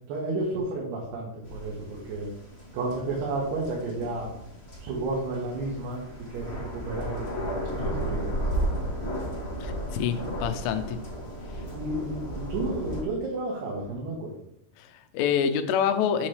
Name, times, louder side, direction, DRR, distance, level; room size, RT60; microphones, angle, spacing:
voice 1, 0.1-2.3 2.7-4.3 4.8-6.0 6.3-7.3 7.7-8.9 11.7-14.3, right 2 dB, 70° right, -5 dB, 3.4 m, -32 dB
sound 1, 1.4-13.0, right 1 dB, 55° left, 0.7 m, -34 dB
voice 2, 9.6-11.0 14.8-16.3, left 8 dB, 90° left, 9 dB, 3.2 m, -27 dB
8.3 x 7.1 x 3.3 m, 0.74 s
omnidirectional pair, 5.4 m